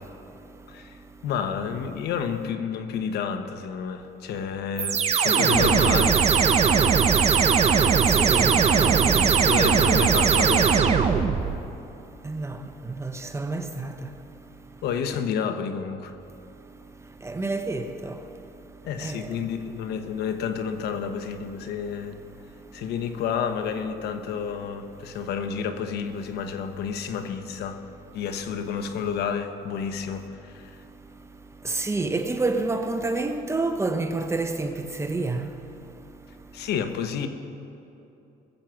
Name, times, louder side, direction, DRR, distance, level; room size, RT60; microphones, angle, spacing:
voice 1, 0.7-6.2 7.1-7.3 7.9-8.1 9.4-11.5 14.8-16.1 18.8-22.2 22.7-27.8 28.1-30.8 36.5-37.3, left 7 dB, 75° left, 1.0 m, -30 dB
sound 1, 4.8-11.6, right 6 dB, 40° right, 0.8 m, -20 dB
voice 2, 8.2-9.3 12.2-12.6 12.9-13.9 17.2-18.2 19.0-19.2 31.6-34.7 35.0-35.5, right 3 dB, 15° right, 1.0 m, -28 dB
20.5 x 7.6 x 5.8 m
cardioid pair, 110°, 17 cm